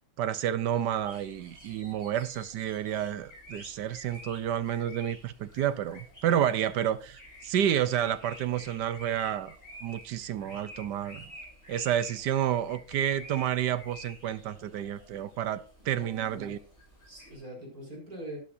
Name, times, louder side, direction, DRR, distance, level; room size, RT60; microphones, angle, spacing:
voice 1, 0.2-9.6 9.8-11.3 11.7-16.6, right 10 dB, 65° right, 1.1 m, -30 dB
sound 1, 0.8-17.4, equal, 25° left, 5.6 m, -50 dB
voice 2, 15.9-16.5 17.1-18.4, right 1 dB, 40° right, 5.6 m, -43 dB
12.0 x 11.5 x 2.7 m
omnidirectional pair, 2.3 m